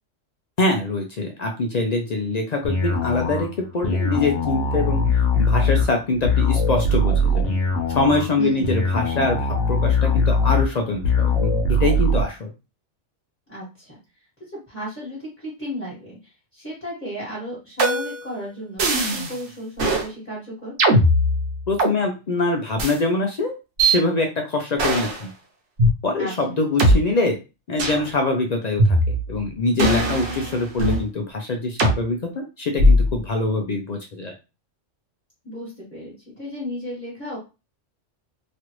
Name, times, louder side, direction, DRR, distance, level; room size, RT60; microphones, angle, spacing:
voice 1, 0.6-5.0 5.4-7.6 7.9-12.5 21.7-23.5 23.8-25.3 26.0-27.4 27.7-29.0 29.3-34.3, left 2 dB, 60° left, 3 dB, 0.4 m, -24 dB
sound 1, 2.6-12.2, left 2 dB, 75° left, 1.2 m, -21 dB
voice 2, 8.4-8.8 13.5-14.0 14.7-20.7 26.2-26.6 35.4-37.4, equal, 10° left, -7 dB, 1.3 m, -34 dB
sound 2, 17.8-18.3 18.8-19.4 19.8-20.1 20.8-22.0 22.8-23.0 23.8-24.0 24.8-25.2 25.8-25.9 26.8-26.9 27.8-28.1 28.8-29.4 29.8-31.1 31.8-32.0 32.8-33.2, equal, 70° right, 1.1 m, -19 dB
3.0 x 2.5 x 3.0 m, 0.29 s
omnidirectional pair, 1.3 m